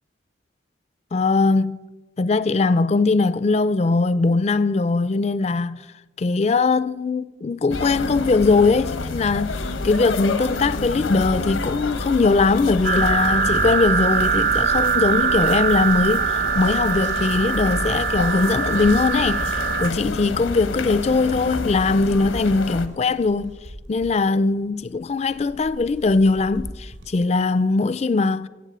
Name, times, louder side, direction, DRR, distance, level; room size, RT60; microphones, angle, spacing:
voice 1, 1.1-1.8 2.2-5.8 6.2-23.6 23.9-28.5, left 3 dB, 35° left, 0.3 m, -20 dB
sound 1, 7.7-22.9, left 2 dB, 80° left, 1.0 m, -29 dB
sound 2, 12.8-19.9, right 6 dB, 45° right, 0.5 m, -22 dB
sound 3, 13.1-27.7, equal, 80° right, 4.4 m, -45 dB
15.0 x 8.1 x 8.0 m
head